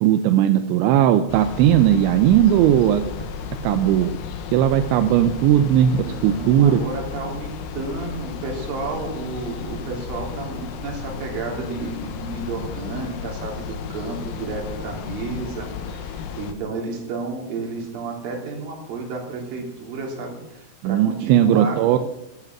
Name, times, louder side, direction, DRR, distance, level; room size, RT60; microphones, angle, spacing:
voice 1, 0.0-3.1 3.6-4.1 4.5-6.8 20.8-22.0, right 11 dB, 80° right, 9 dB, 2.7 m, -17 dB
sound 1, 1.3-16.5, left 6 dB, 85° left, 3.7 m, -33 dB
voice 2, 6.0-22.0, right 3 dB, 50° right, 0 dB, 4.4 m, -32 dB
13.5 x 12.5 x 6.0 m, 0.87 s
omnidirectional pair, 5.9 m